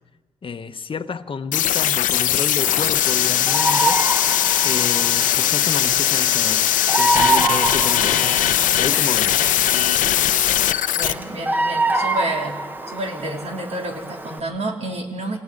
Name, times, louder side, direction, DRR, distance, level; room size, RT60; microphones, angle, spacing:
voice 1, 0.4-4.0 4.6-6.6 7.0-9.4, left 5 dB, 40° left, 1.0 m, -30 dB
sound 1, 1.5-11.1, left 11 dB, 80° left, 0.7 m, -19 dB
Bird vocalization bird call bird song, 2.6-14.4, right 2 dB, 15° right, 1.3 m, -26 dB
voice 2, 11.0-12.6 12.9-15.4, right 1 dB, 55° right, 3.6 m, -29 dB
27.5 x 18.0 x 5.3 m
cardioid pair, 70°, 13 cm